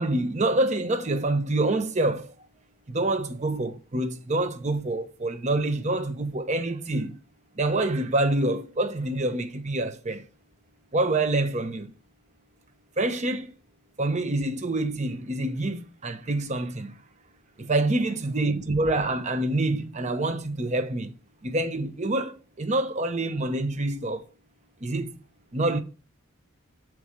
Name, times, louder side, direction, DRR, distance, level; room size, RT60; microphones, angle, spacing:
voice 1, 0.0-2.3 2.9-7.1 7.6-10.2 10.9-11.9 13.0-13.5 14.0-17.0 17.6-21.1 21.4-24.2 24.8-25.2 25.5-25.8, right 2 dB, 35° right, 0.8 m, -26 dB
7.0 x 4.6 x 6.2 m
head